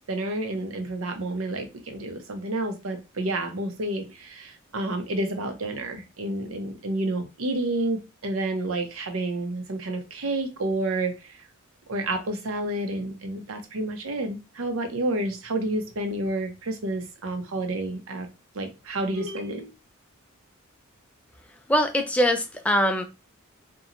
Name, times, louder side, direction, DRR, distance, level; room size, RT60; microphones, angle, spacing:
voice 1, 0.1-11.4 11.9-18.3 18.5-19.7, right 2 dB, 70° right, 0.7 m, -30 dB
voice 2, 21.7-23.0, equal, 5° left, 0.4 m, -22 dB
2.8 x 2.2 x 2.5 m
head